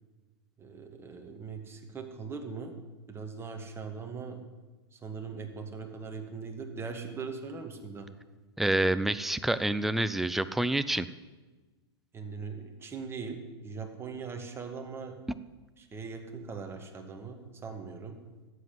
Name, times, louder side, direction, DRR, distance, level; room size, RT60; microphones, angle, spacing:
voice 1, 0.6-2.7 3.1-4.4 4.9-8.1 12.1-15.2 15.8-18.2, right 5 dB, 15° right, 4 dB, 2.0 m, -40 dB
voice 2, 8.6-11.1, right 1 dB, ahead, 13 dB, 0.4 m, -27 dB
12.5 x 8.0 x 9.4 m, 1.2 s
hypercardioid pair, 110°, 14 cm